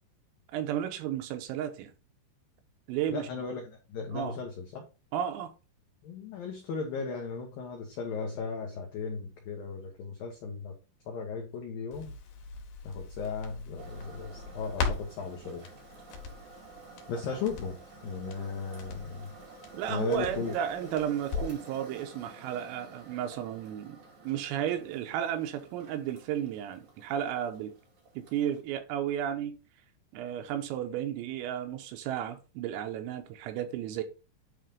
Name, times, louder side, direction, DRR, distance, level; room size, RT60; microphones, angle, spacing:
voice 1, 0.5-1.9 2.9-3.3 4.1-4.3 5.1-5.5 19.7-24.0 24.3-27.7 28.2-29.6 30.1-34.0, right 10 dB, 85° right, 3.7 m, -33 dB
voice 2, 3.1-4.8 6.0-10.7 11.1-12.1 12.8-15.7 17.1-17.8 18.0-19.3 19.9-20.6, left 5 dB, 80° left, 2.0 m, -36 dB
Crackle, 11.9-21.7 22.0-22.1, left 5 dB, 60° left, 2.6 m, -40 dB
sound 1, 13.8-28.6, right 3 dB, 45° right, 2.8 m, -50 dB
9.9 x 3.4 x 5.3 m
omnidirectional pair, 5.9 m